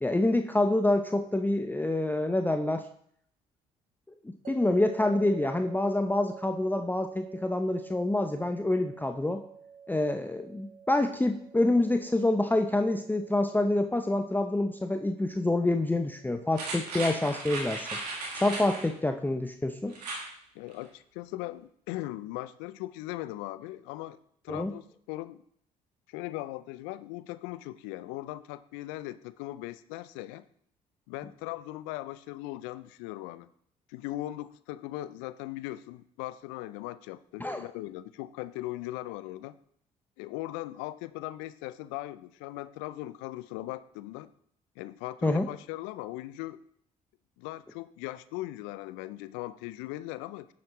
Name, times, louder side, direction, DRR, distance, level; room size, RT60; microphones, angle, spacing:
voice 1, 0.0-2.8 4.5-9.4 9.9-18.0 18.4-19.9 24.5-24.7 37.4-37.6 45.2-45.5, left 2 dB, 10° left, 6 dB, 0.7 m, -27 dB
sound 1, 4.4-17.6, right 7 dB, 40° right, 1.3 m, -49 dB
sound 2, 16.5-18.9 19.9-20.3 20.7-20.8, right 2 dB, 90° right, 1.5 m, -36 dB
voice 2, 20.5-24.2 24.4-25.4 26.1-30.4 31.1-33.5 33.9-39.6 40.2-44.3 44.8-46.6 47.4-50.5, left 16 dB, 70° left, 16 dB, 0.5 m, -39 dB
9.7 x 7.2 x 3.1 m, 0.65 s
hypercardioid pair, 50°, 20 cm